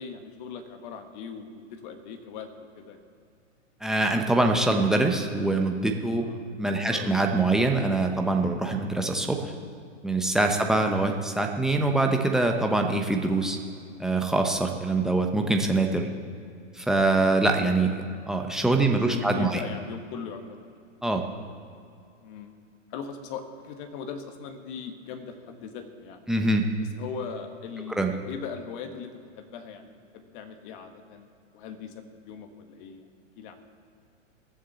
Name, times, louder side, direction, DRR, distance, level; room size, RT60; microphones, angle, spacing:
voice 1, 0.0-2.5 2.7-3.0 6.2-6.5 6.8-7.1 17.6-18.0 18.8-20.6 22.2-22.5 22.9-26.3 27.0-31.3 31.5-33.0 33.4-33.6, left 6 dB, 40° left, 6 dB, 1.6 m, -40 dB
voice 2, 3.8-6.3 6.6-9.5 10.0-13.6 14.0-16.1 16.7-17.9 18.3-19.6 21.0-21.2 26.3-26.6 28.0-28.1, right 2 dB, ahead, 2 dB, 0.9 m, -24 dB
19.0 x 7.5 x 6.8 m, 2.4 s
hypercardioid pair, 130°, 38 cm